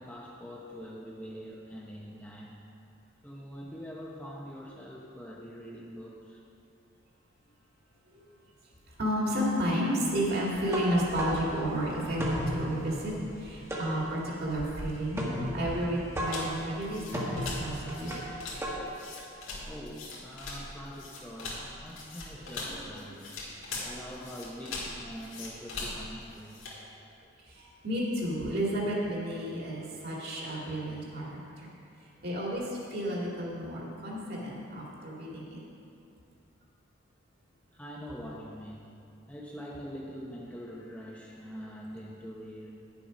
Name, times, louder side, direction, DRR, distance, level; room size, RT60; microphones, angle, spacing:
voice 1, 0.0-2.5 3.2-6.4 19.6-23.5 23.8-26.6 32.4-32.8 37.7-38.9 39.3-42.7, equal, 5° left, -4 dB, 0.7 m, -44 dB
voice 2, 9.0-13.1 13.4-18.2 22.4-23.0 27.4-31.7 32.2-35.6, equal, 50° right, -4 dB, 2.0 m, -32 dB
sound 1, 10.5-18.8, equal, 15° right, 1.0 m, -36 dB
sound 2, 16.3-26.8, left 3 dB, 75° left, 1.9 m, -41 dB
9.8 x 7.0 x 5.2 m, 2.6 s
head